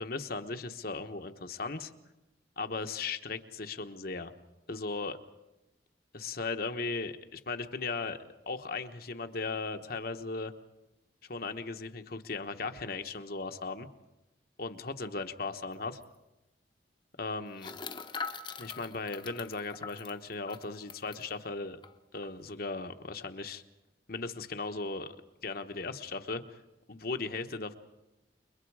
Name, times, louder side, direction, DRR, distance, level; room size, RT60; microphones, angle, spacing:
voice 1, 0.0-1.9 2.6-4.3 4.7-5.2 6.1-10.5 11.3-13.9 14.6-16.0 17.2-17.7 18.6-21.8 22.1-23.6 24.1-25.2 25.4-26.4 26.9-27.7, left 3 dB, 55° left, 7 dB, 1.2 m, -37 dB
sound 1, 15.7-15.8 16.0-16.2 17.6-21.3 21.8-21.9 22.2-22.5, left 5 dB, 25° left, 0.9 m, -42 dB
29.0 x 23.0 x 4.9 m, 0.99 s
head